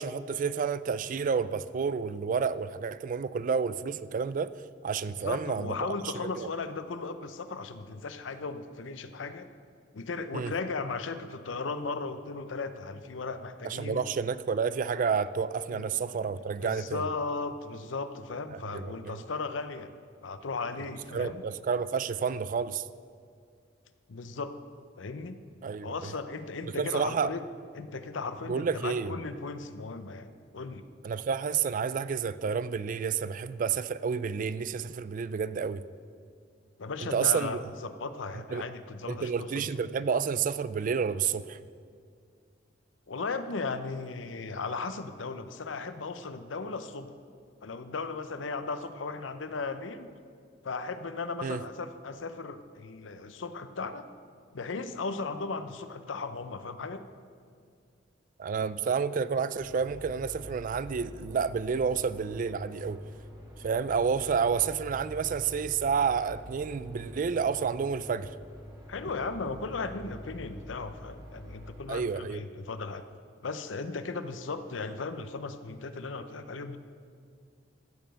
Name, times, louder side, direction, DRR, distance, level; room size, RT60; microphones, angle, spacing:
voice 1, 0.0-4.5 4.8-5.9 6.4-6.5 10.3-10.5 13.6-17.1 18.7-19.2 21.1-22.9 25.6-26.1 26.8-27.3 28.5-29.1 31.0-35.8 37.1-37.6 38.5-38.6 39.1-41.6 51.4-51.6 58.4-63.0 63.6-68.3 71.9-72.4, right 6 dB, 45° right, 16 dB, 0.3 m, -30 dB
voice 2, 5.1-9.5 9.9-14.0 15.7-15.9 16.6-19.9 20.2-21.4 24.1-24.5 25.0-25.4 25.8-27.4 27.7-30.8 36.8-39.7 43.1-47.1 47.6-50.1 50.6-54.0 54.5-57.0 68.9-73.0 73.4-76.8, left 4 dB, 80° left, 10 dB, 0.7 m, -36 dB
sound 1, 59.6-71.8, equal, 20° right, 1.8 m, -46 dB
14.5 x 6.9 x 6.3 m, 2.2 s
head